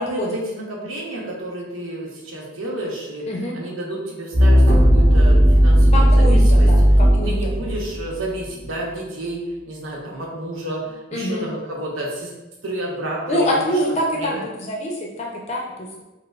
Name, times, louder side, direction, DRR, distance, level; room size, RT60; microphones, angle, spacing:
voice 1, 0.0-6.7 7.1-12.3 12.6-13.8 14.1-14.4, right 1 dB, 90° right, -3 dB, 0.8 m, -30 dB
sound 1, 4.3-8.4, equal, 65° right, 1.2 m, -14 dB
voice 2, 5.9-7.3 11.1-11.5 13.3-16.0, equal, 35° left, -1 dB, 0.6 m, -25 dB
4.8 x 2.0 x 2.4 m, 1.1 s
head